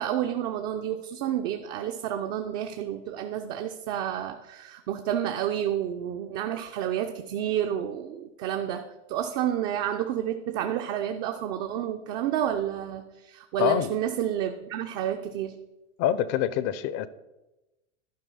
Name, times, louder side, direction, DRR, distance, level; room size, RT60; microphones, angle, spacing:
voice 1, 0.0-15.6, right 10 dB, 50° right, 6 dB, 0.7 m, -30 dB
voice 2, 13.6-13.9 16.0-17.1, left 10 dB, 45° left, 16 dB, 0.6 m, -25 dB
11.5 x 4.4 x 5.6 m, 1.0 s
supercardioid pair, 125°, 36 cm